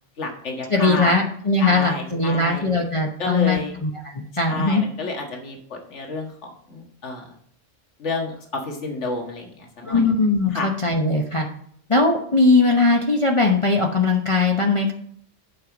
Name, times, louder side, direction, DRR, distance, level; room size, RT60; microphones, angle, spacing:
voice 1, 0.2-1.1 1.6-2.6 3.2-3.8 4.5-7.3 8.0-10.0 10.5-10.7, left 3 dB, 70° left, 1 dB, 2.0 m, -30 dB
voice 2, 0.7-4.8 9.8-11.5 11.9-14.9, left 3 dB, 30° left, 0 dB, 0.9 m, -20 dB
8.6 x 5.6 x 6.0 m, 0.62 s
omnidirectional pair, 1.3 m